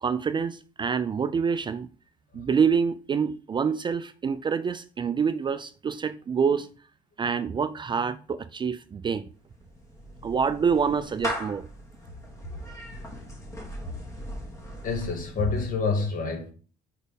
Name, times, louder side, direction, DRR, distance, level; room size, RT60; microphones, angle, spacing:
voice 1, 0.0-1.9 2.3-6.7 7.2-9.3 10.2-11.7, right 6 dB, 30° right, 0.4 m, -26 dB
Clapping / Meow, 9.3-15.8, equal, 20° left, 1.8 m, -39 dB
voice 2, 14.8-16.5, left 4 dB, 55° left, 1.8 m, -27 dB
5.0 x 4.3 x 5.2 m
cardioid pair, 110°, 17 cm